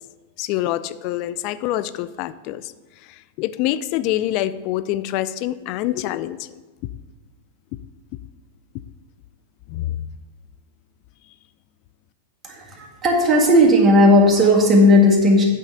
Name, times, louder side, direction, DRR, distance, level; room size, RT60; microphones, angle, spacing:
voice 1, 0.4-2.7 3.1-6.5 9.7-10.0, left 14 dB, 50° left, 15 dB, 0.4 m, -25 dB
voice 2, 12.4-15.4, left 1 dB, 20° right, -1 dB, 1.7 m, -14 dB
9.0 x 3.7 x 6.7 m, 1.3 s
hypercardioid pair, 125°, 0 cm